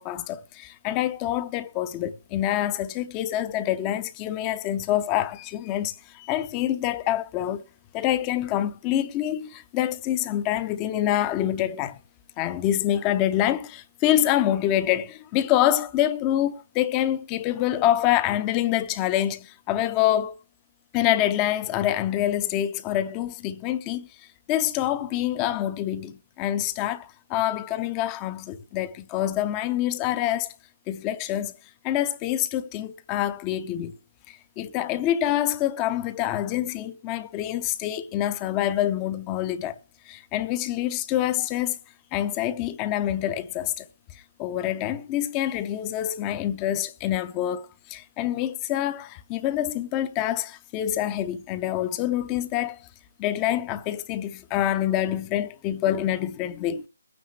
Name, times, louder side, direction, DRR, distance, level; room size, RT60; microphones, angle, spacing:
voice 1, 0.0-7.6 7.9-12.0 12.4-20.4 20.9-24.1 24.5-30.5 30.9-31.5 31.8-33.9 34.3-39.8 40.1-41.8 42.1-43.8 44.4-52.8 53.2-56.9, left 12 dB, 15° left, 0.6 m, -26 dB
22.5 x 9.5 x 3.2 m
hypercardioid pair, 170°, 0 cm